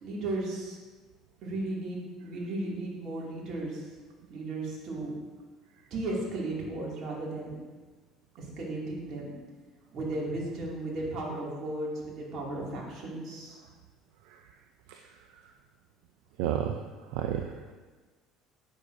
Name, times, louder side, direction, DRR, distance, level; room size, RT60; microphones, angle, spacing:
voice 1, 0.0-0.8 1.4-3.9 4.3-5.2 5.9-7.6 8.4-9.3 9.9-13.6, right 2 dB, 55° right, -4 dB, 2.3 m, -35 dB
voice 2, 16.4-16.8 17.1-17.7, right 10 dB, 80° right, 4 dB, 0.4 m, -31 dB
8.6 x 6.3 x 2.6 m, 1.3 s
supercardioid pair, 85°, 0 cm